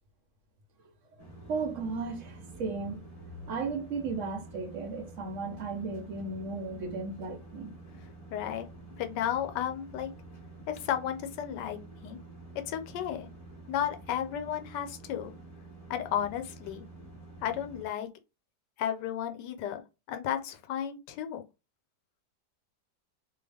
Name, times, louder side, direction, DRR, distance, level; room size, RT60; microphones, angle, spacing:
sound 1, 1.2-17.9, right 2 dB, 30° left, 0.7 m, -49 dB
voice 1, 1.2-7.7, right 4 dB, 60° right, 0.9 m, -35 dB
voice 2, 8.3-8.7 9.0-10.1 10.7-12.2 12.7-13.3 13.7-15.3 15.9-16.8 17.4-18.1 18.8-19.8 20.1-21.4, left 10 dB, 80° left, 1.2 m, -33 dB
2.8 x 2.3 x 3.3 m
omnidirectional pair, 1.8 m